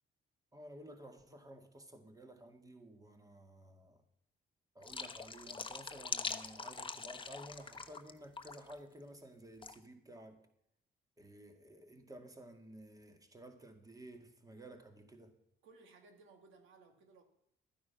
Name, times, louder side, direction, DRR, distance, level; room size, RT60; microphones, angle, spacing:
voice 1, 0.5-4.0 4.8-10.4 11.2-15.3, right 1 dB, 15° right, 2.1 m, -54 dB
sound 1, 4.8-8.1 8.4-8.7 9.6-9.8, left 4 dB, 25° left, 1.0 m, -43 dB
voice 2, 15.6-17.2, right 3 dB, 90° right, 2.1 m, -61 dB
13.0 x 9.4 x 5.8 m
cardioid pair, 90°, 20 cm